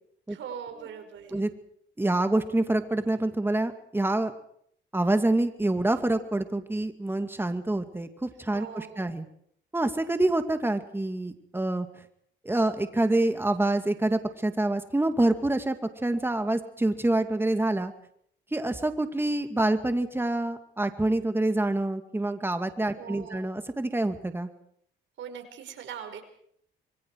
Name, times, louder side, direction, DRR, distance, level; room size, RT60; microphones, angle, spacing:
voice 1, 0.3-1.4 8.5-9.2 23.0-23.4 25.2-26.2, right 7 dB, 70° right, 6 dB, 5.4 m, -41 dB
voice 2, 2.0-4.3 4.9-9.2 9.7-11.9 12.4-15.8 16.0-17.9 18.5-24.5, right 2 dB, 10° right, 8 dB, 2.5 m, -26 dB
27.0 x 23.0 x 4.9 m, 0.67 s
cardioid pair, 90°, 20 cm